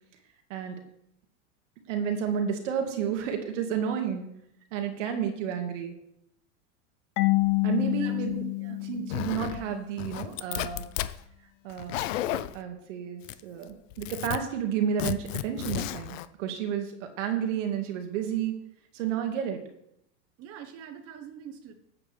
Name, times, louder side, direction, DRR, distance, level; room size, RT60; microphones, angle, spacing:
voice 1, 0.5-0.8 1.9-4.3 4.7-6.0 7.6-10.9 11.6-12.0 12.3-18.5 18.9-19.6, right 8 dB, 75° right, 4 dB, 2.2 m, -31 dB
Marimba xylophone / Wood, 7.2-9.9, left 24 dB, 50° left, 0.5 m, -28 dB
Zipper (clothing), 9.1-9.6 10.0-11.1 11.7-12.6 13.2-13.6 13.9-14.4 15.0-16.2, left 13 dB, 80° left, 0.8 m, -32 dB
voice 2, 20.4-21.7, right 8 dB, 40° right, 5 dB, 1.3 m, -44 dB
14.5 x 8.5 x 3.5 m, 0.77 s
supercardioid pair, 140°, 37 cm